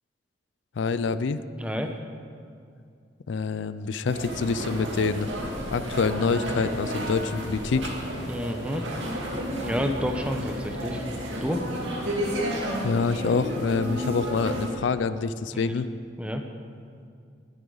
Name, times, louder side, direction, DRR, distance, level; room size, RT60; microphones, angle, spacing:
voice 1, 0.8-1.4 3.3-5.3 5.7-7.9 12.8-15.9, left 4 dB, 70° left, 13 dB, 0.4 m, -26 dB
voice 2, 1.6-1.9 8.3-8.9 9.6-11.0 11.4-11.6 15.5-15.7 16.2-16.4, equal, 5° right, 4 dB, 0.8 m, -29 dB
sound 1, 4.1-14.7, equal, 70° right, 2.5 m, -32 dB
19.5 x 9.7 x 4.0 m, 2.4 s
head